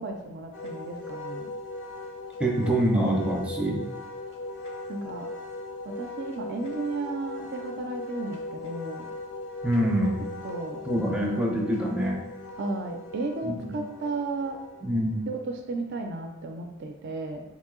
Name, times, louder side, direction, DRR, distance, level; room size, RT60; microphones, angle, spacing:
voice 1, 0.0-1.5 4.9-5.3 5.8-9.1 10.4-10.8 12.6-14.6 15.3-17.4, right 3 dB, 55° right, 4 dB, 0.4 m, -34 dB
Wind instrument woodwind instrument, 0.5-15.2, left 2 dB, 65° left, 0.6 m, -39 dB
voice 2, 2.4-3.8 9.6-10.3 10.9-12.2 13.4-13.8 14.8-15.2, right 1 dB, 5° right, -1 dB, 0.5 m, -25 dB
3.0 x 2.6 x 3.7 m, 0.91 s
head